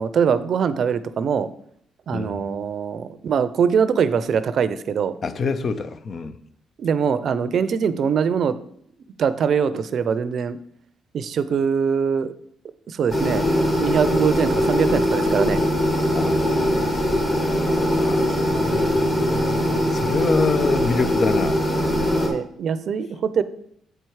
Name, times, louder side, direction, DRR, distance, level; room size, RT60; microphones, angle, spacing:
voice 1, 0.0-1.5 2.1-5.1 6.8-8.6 9.2-10.6 11.1-12.3 12.9-13.4 13.8-15.6 22.3-23.4, right 7 dB, 60° right, 0.5 m, -22 dB
voice 2, 2.1-2.4 5.2-6.4 16.2-16.5 16.7-17.1 17.9-22.2, left 4 dB, 50° left, 0.6 m, -27 dB
sound 1, 13.1-22.3, equal, 30° left, 2.3 m, -21 dB
7.9 x 4.5 x 4.7 m
cardioid pair, 90°, 0 cm